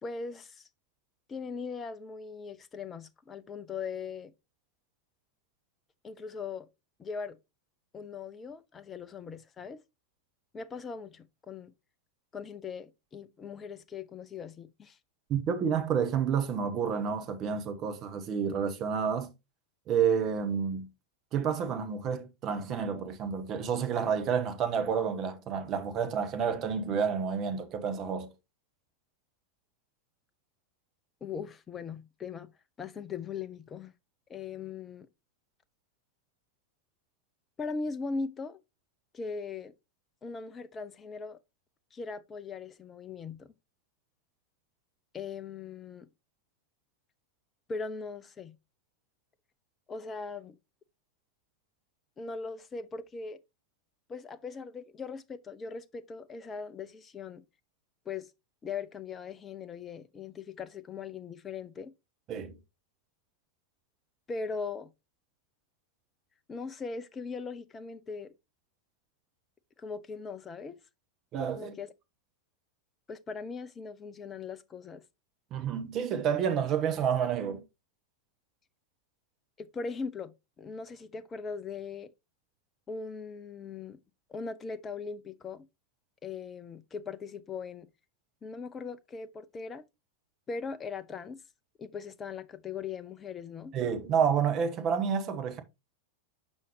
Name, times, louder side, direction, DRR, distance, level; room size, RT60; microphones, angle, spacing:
voice 1, 0.0-0.7 1.3-4.3 6.0-6.7 7.0-7.4 7.9-9.8 10.5-11.7 12.3-15.0 31.2-32.5 32.8-33.9 34.3-35.1 37.6-38.6 39.1-39.7 40.2-41.4 41.9-43.5 45.1-46.1 47.7-48.6 49.9-50.6 52.2-53.4 54.1-57.4 58.1-58.3 58.6-61.9 64.3-64.9 66.5-68.3 69.8-70.8 71.5-71.9 73.1-75.0 79.6-82.1 82.9-84.0 84.3-85.7 86.2-87.9 88.4-89.8 90.5-91.4 91.8-93.7, left 5 dB, 20° left, 0.5 m, -39 dB
voice 2, 15.3-19.3 19.9-20.9 21.3-28.3 62.3-62.6 71.3-71.7 75.5-77.6 93.7-95.6, right 7 dB, 35° right, 1.1 m, -29 dB
7.2 x 5.5 x 3.0 m
figure-of-eight pair, 90°, 0 cm